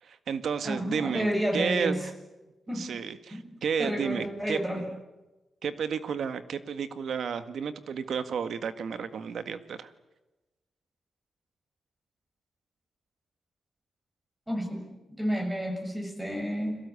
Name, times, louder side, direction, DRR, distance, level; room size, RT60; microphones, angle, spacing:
voice 1, 0.0-1.3 1.5-2.1 2.7-4.9 5.6-9.9, right 6 dB, 65° right, 11 dB, 1.8 m, -32 dB
voice 2, 0.6-2.0 2.7-2.9 3.3-3.4 3.8-4.8 14.5-16.8, equal, 10° right, 4 dB, 6.9 m, -30 dB
30.0 x 22.5 x 8.5 m, 1.1 s
cardioid pair, 115°, 0 cm